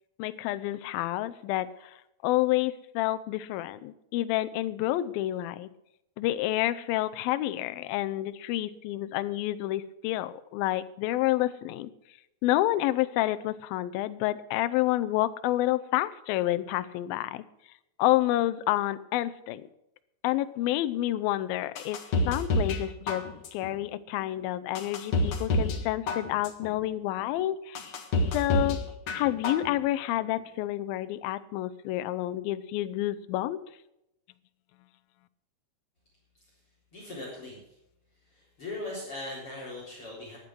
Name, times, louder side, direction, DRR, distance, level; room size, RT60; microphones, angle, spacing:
voice 1, 0.2-2.0 2.2-5.7 6.2-11.9 12.4-17.4 18.0-19.6 20.2-27.8 28.3-28.8 29.1-33.6, left 15 dB, 80° left, 13 dB, 2.4 m, -29 dB
sound 1, 21.8-22.8 23.1-23.7 24.2-24.3 24.8-25.8 26.1-26.7 27.2-27.3 27.8-28.8 29.1-29.7 30.0-30.1, left 2 dB, 55° left, 1.5 m, -27 dB
voice 2, 36.9-37.6 38.3-40.4, left 2 dB, 35° left, -4 dB, 4.6 m, -39 dB
14.5 x 10.5 x 6.1 m, 0.84 s
omnidirectional pair, 4.5 m